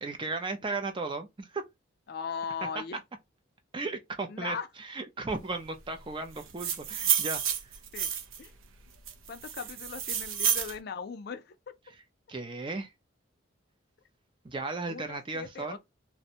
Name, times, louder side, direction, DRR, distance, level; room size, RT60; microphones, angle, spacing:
voice 1, 0.0-1.6 2.7-2.8 3.7-7.7 12.3-12.9 14.4-15.8, right 3 dB, 25° right, 0.4 m, -35 dB
voice 2, 2.1-3.0 4.3-4.7 7.9-8.1 8.4-8.5 9.3-11.6 14.9-15.8, left 6 dB, 50° left, 0.3 m, -38 dB
sound 1, 6.4-8.5 9.1-10.8, right 8 dB, 80° right, 0.5 m, -30 dB
2.5 x 2.1 x 2.8 m
head